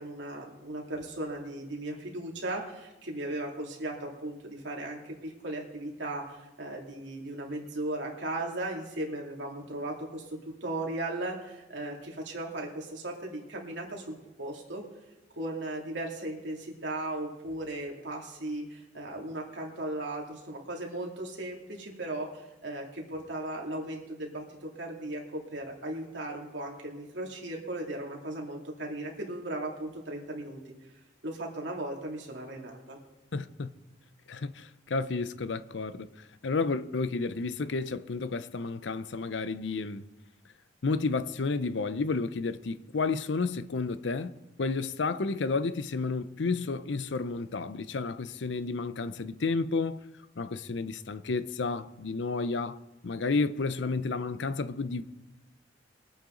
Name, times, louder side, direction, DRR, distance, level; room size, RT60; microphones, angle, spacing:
voice 1, 0.0-14.8 15.3-30.6 31.2-33.0, right 1 dB, 70° right, 2.7 m, -37 dB
voice 2, 33.3-33.7 34.3-36.1 36.4-40.1 40.8-44.3 44.6-50.0 50.4-52.8 53.0-55.0, left 4 dB, 70° left, 0.6 m, -31 dB
22.0 x 8.8 x 3.9 m
head